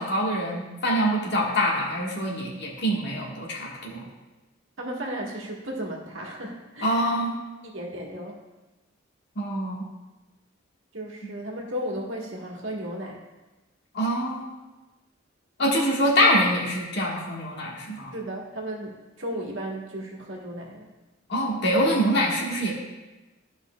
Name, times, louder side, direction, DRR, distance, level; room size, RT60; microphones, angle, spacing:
voice 1, 0.0-4.0 6.8-7.4 9.3-9.9 13.9-14.5 15.6-18.1 21.3-22.7, equal, 60° left, -2 dB, 1.5 m, -25 dB
voice 2, 4.8-7.1 7.6-8.4 10.9-13.2 18.1-20.9, equal, 70° right, -2 dB, 1.4 m, -34 dB
12.5 x 5.5 x 2.3 m, 1.1 s
head